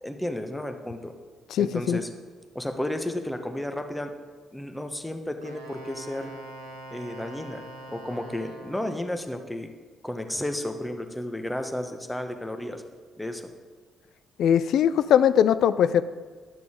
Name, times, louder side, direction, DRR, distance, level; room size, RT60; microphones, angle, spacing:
voice 1, 0.0-1.1 1.6-2.1 2.5-4.1 4.5-6.3 6.9-9.7 10.0-12.8 13.2-13.5, left 1 dB, 10° left, 6 dB, 1.2 m, -32 dB
voice 2, 1.5-2.0 14.4-16.0, left 9 dB, 65° left, 14 dB, 0.4 m, -20 dB
Wind instrument woodwind instrument, 5.4-9.1, right 1 dB, 80° right, 1.1 m, -43 dB
11.0 x 6.8 x 5.0 m, 1.5 s
figure-of-eight pair, 40°, 0 cm